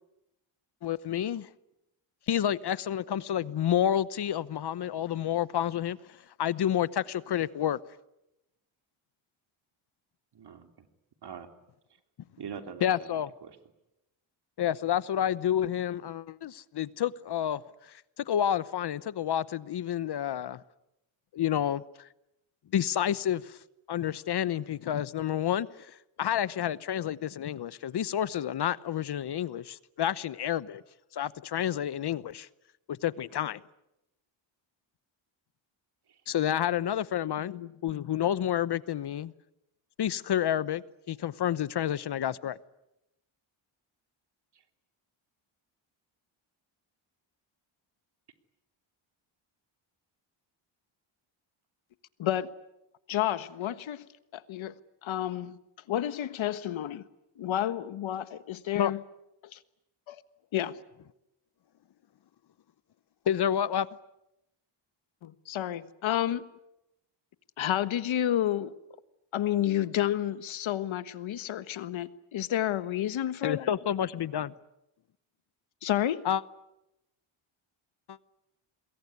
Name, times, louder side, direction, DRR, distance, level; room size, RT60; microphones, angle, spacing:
voice 1, 0.8-1.5 2.3-7.8 12.8-13.3 14.6-20.6 21.3-22.1 22.7-23.6 23.9-30.8 31.1-32.5 32.9-33.6 36.3-37.5 37.8-39.3 40.0-42.6 58.7-58.9 63.3-63.9 73.4-74.5 76.2-76.4 78.1-78.2, left 10 dB, 55° left, 0.9 m, -29 dB
voice 2, 10.3-10.9 11.2-11.5 12.4-13.6 36.1-36.2 36.7-36.9 44.5-44.6, right 7 dB, 50° right, 3.1 m, -44 dB
voice 3, 37.4-38.3 52.2-52.5 53.1-54.0 54.3-54.7 55.0-55.6 55.9-57.0 57.4-59.0 59.5-59.6 60.1-60.2 60.5-60.8 65.2-66.5 67.6-68.7 69.3-73.7 75.8-76.3, left 11 dB, 70° left, 1.4 m, -30 dB
27.0 x 22.0 x 9.6 m
cardioid pair, 95°, 49 cm